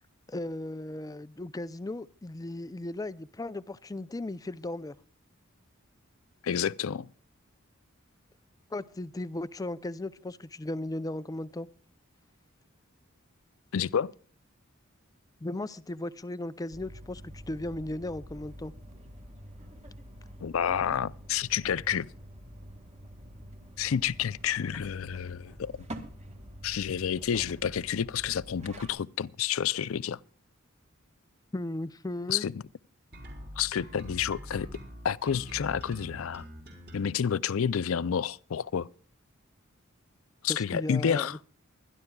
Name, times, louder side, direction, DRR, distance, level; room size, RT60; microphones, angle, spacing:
voice 1, 0.3-5.0 8.7-11.7 15.4-18.7 31.5-32.4 40.5-41.3, left 1 dB, 15° left, 0.5 m, -36 dB
voice 2, 6.4-7.1 13.7-14.1 20.4-22.1 23.8-25.7 26.6-30.2 32.3-32.5 33.6-34.7 35.0-36.4 36.9-38.9 40.4-41.4, left 8 dB, 75° left, 0.5 m, -29 dB
sound 1, 16.7-28.9, equal, 35° right, 1.9 m, -47 dB
sound 2, 33.1-37.1, equal, 50° right, 4.4 m, -44 dB
24.0 x 11.0 x 2.3 m
head